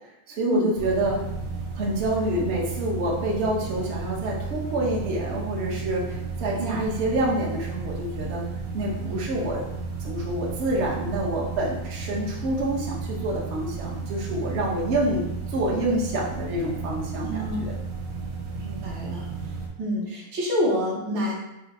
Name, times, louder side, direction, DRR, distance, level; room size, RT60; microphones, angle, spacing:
voice 1, 0.3-1.2 1.7-8.4 8.7-9.6 10.0-17.7, right 1 dB, 55° right, -3 dB, 0.7 m, -27 dB
sound 1, 0.8-19.7, right 4 dB, 90° right, 1.7 m, -33 dB
voice 2, 17.2-17.6 18.6-19.3 19.8-21.3, equal, 70° right, -5 dB, 1.9 m, -27 dB
5.0 x 2.1 x 4.6 m, 0.90 s
omnidirectional pair, 2.2 m